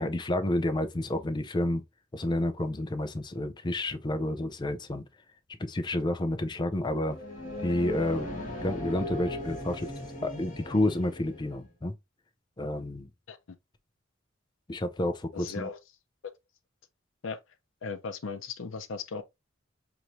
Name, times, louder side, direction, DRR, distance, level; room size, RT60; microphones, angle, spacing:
voice 1, 0.0-1.8 2.1-5.1 5.6-7.2 7.6-8.3 8.6-9.9 10.2-11.9 12.6-13.1 14.7-15.7, left 1 dB, 20° left, 0.5 m, -30 dB
sound 1, 6.9-11.6, left 1 dB, 40° left, 1.5 m, -38 dB
voice 2, 15.3-15.8 17.2-17.4 17.8-19.2, left 5 dB, 75° left, 0.5 m, -37 dB
4.6 x 3.0 x 2.5 m
head